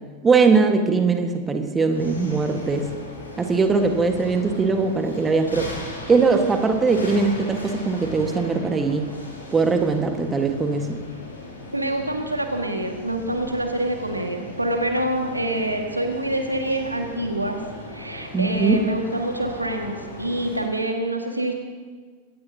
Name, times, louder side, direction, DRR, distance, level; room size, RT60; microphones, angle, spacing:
voice 1, 0.2-2.9 3.4-5.7 6.1-9.1 9.5-11.0 18.3-18.8, right 4 dB, 15° right, 6 dB, 1.5 m, -20 dB
sound 1, 1.9-20.6, left 1 dB, 80° left, 4.6 m, -38 dB
voice 2, 11.7-17.6 17.9-21.6, right 1 dB, 85° right, 4 dB, 1.8 m, -26 dB
22.0 x 18.0 x 2.9 m, 1.5 s
figure-of-eight pair, 90°, 0 cm